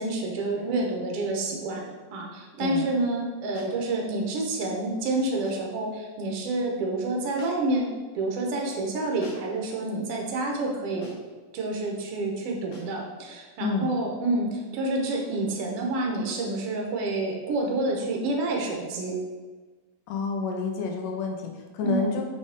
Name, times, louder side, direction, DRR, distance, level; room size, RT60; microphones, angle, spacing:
voice 1, 0.0-1.8 2.1-11.1 11.5-19.2 21.8-22.2, right 2 dB, 70° right, 0 dB, 1.5 m, -28 dB
voice 2, 2.6-3.0 13.6-14.0 20.1-22.2, left 5 dB, 80° left, 3 dB, 2.3 m, -29 dB
sound 1, 3.5-3.8 5.4-5.7 7.4-7.8 9.2-9.6 11.0-11.4 12.7-13.0, left 1 dB, 55° left, 2.1 m, -46 dB
6.3 x 5.1 x 3.6 m, 1.3 s
omnidirectional pair, 3.8 m